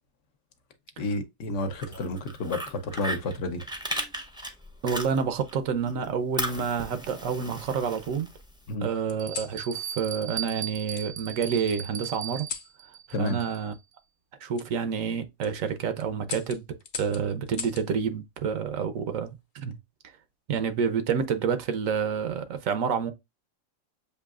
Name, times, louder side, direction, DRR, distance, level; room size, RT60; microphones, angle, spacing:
voice 1, 1.0-3.6 8.7-8.9 13.1-13.4, left 2 dB, 70° left, 1.1 m, -30 dB
Fire, 1.6-5.6 5.9-8.7, right 1 dB, 5° right, 0.5 m, -36 dB
sound 1, 1.7-2.8 3.9-4.3 5.6-6.3 6.9-7.8 9.1-9.6 10.9-11.1 12.4-12.7 14.5-14.7 15.2-15.5 16.2-17.9 19.4-19.8, left 6 dB, 50° left, 0.7 m, -41 dB
voice 2, 4.8-8.3 8.8-12.5 13.2-13.7 14.4-16.6 17.0-19.8 20.5-23.1, right 6 dB, 80° right, 1.1 m, -28 dB
Bell, 8.3-8.4 9.2-13.8, right 9 dB, 60° right, 0.7 m, -38 dB
6.9 x 2.7 x 2.4 m
omnidirectional pair, 1.4 m